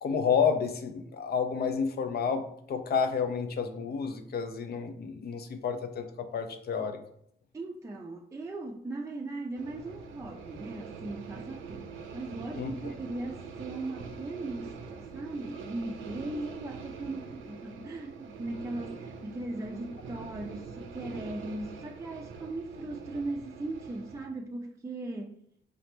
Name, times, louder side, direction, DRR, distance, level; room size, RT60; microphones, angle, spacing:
voice 1, 0.0-7.0 12.6-12.9, left 6 dB, 50° left, 0.6 m, -30 dB
voice 2, 7.5-25.4, right 2 dB, 15° right, 0.4 m, -38 dB
sound 1, 9.5-24.3, right 5 dB, 85° right, 0.6 m, -44 dB
5.0 x 2.9 x 3.2 m
cardioid pair, 90°, 20 cm